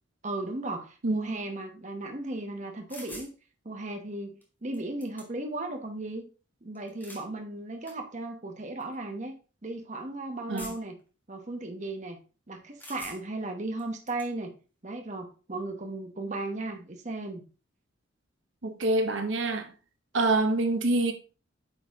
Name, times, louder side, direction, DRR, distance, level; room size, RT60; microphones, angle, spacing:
voice 1, 0.2-3.3 3.6-6.3 6.6-9.4 9.6-10.9 11.3-12.2 12.5-14.5 14.8-17.4, right 2 dB, 35° right, 1.0 m, -36 dB
sound 1, 2.9-3.3 4.4-4.5 4.7-5.5 6.7-7.3 7.9-8.0 8.8-9.0 10.6-11.0 12.8-13.4 13.8-14.3, left 1 dB, 10° left, 1.5 m, -45 dB
voice 2, 18.6-19.7 20.1-21.1, right 2 dB, 65° right, 1.0 m, -26 dB
9.0 x 4.2 x 3.6 m
head